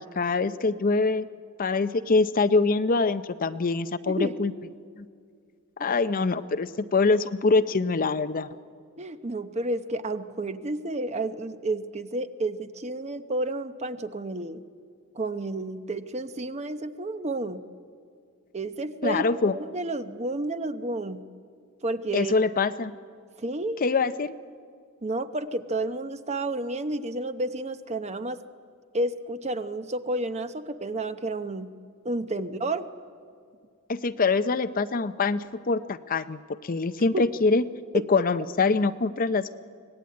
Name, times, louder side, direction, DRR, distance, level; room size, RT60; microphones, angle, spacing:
voice 1, 0.2-1.3 1.6-4.5 5.0-5.1 5.8-8.5 19.0-19.6 22.1-22.9 23.8-24.3 33.9-37.6 38.1-39.6, left 3 dB, 40° left, 12 dB, 0.6 m, -24 dB
voice 2, 9.0-14.6 15.1-17.6 18.5-19.2 19.5-21.2 21.8-22.3 23.4-23.8 25.0-28.4 28.9-31.7 32.0-32.9 37.1-37.3 37.9-38.3, right 2 dB, 30° right, 10 dB, 0.8 m, -31 dB
23.5 x 19.0 x 9.5 m, 2.1 s
head